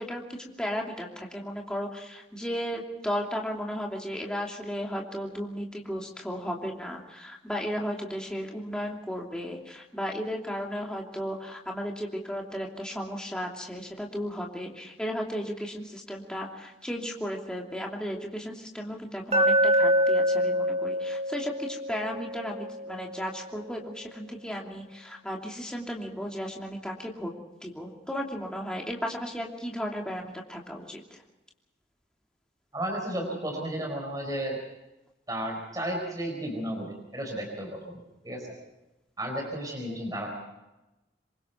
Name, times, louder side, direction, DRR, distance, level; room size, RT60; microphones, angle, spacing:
voice 1, 0.0-27.3 27.6-31.2, equal, 5° left, -1 dB, 2.8 m, -35 dB
Glass, 19.3-23.4, equal, 35° right, 2.9 m, -26 dB
voice 2, 32.7-34.6 35.3-38.0 38.2-38.5 39.2-40.3, right 1 dB, 20° right, 1 dB, 4.6 m, -33 dB
27.0 x 23.0 x 4.6 m, 1.0 s
head